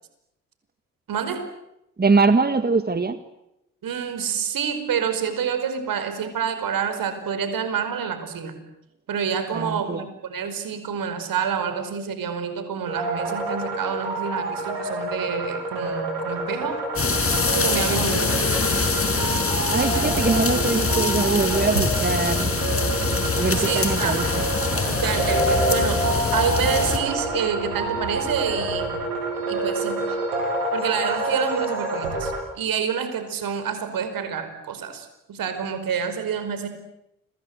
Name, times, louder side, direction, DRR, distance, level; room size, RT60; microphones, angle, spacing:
voice 1, 1.1-1.5 3.8-8.5 9.1-16.8 17.2-18.4 23.3-24.2 24.8-28.9 29.5-30.2 30.7-36.7, right 7 dB, 65° right, 9 dB, 5.1 m, -28 dB
voice 2, 2.0-3.2 9.5-10.0 19.7-22.5 23.3-24.5, right 4 dB, 25° right, 11 dB, 1.8 m, -22 dB
sound 1, 12.8-32.3, right 2 dB, 90° right, 7.8 m, -27 dB
sound 2, 17.0-27.0, left 4 dB, 35° left, 5.9 m, -24 dB
29.0 x 24.5 x 8.1 m, 0.84 s
hypercardioid pair, 40°, 37 cm